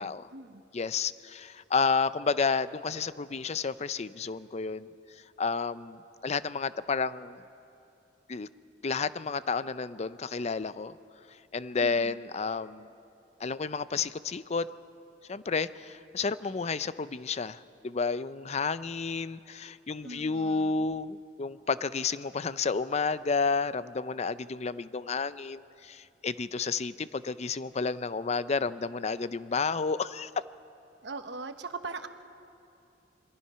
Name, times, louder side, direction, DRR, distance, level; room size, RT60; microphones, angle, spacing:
voice 1, 0.0-0.6 11.8-12.2 20.0-20.9 31.0-32.1, right 3 dB, 65° right, 8 dB, 1.2 m, -41 dB
voice 2, 0.7-4.9 5.4-7.4 8.3-8.5 8.8-11.0 11.5-12.9 13.4-14.7 15.3-30.3, left 4 dB, 35° left, 15 dB, 0.5 m, -31 dB
26.5 x 22.5 x 5.7 m, 2.7 s
head